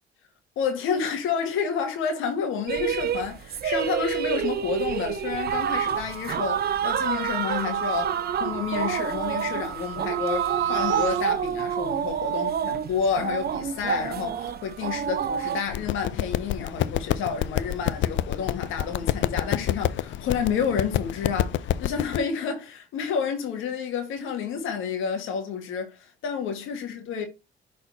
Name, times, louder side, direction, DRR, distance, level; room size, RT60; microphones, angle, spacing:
voice 1, 0.5-27.3, left 6 dB, 90° left, 1.6 m, -30 dB
sound 1, 2.7-15.6, right 8 dB, 50° right, 0.7 m, -28 dB
sound 2, 5.5-11.2, right 10 dB, 75° right, 1.3 m, -34 dB
sound 3, 15.7-22.2, left 12 dB, 70° left, 0.5 m, -28 dB
6.1 x 4.1 x 4.0 m
cardioid pair, 90°, 20 cm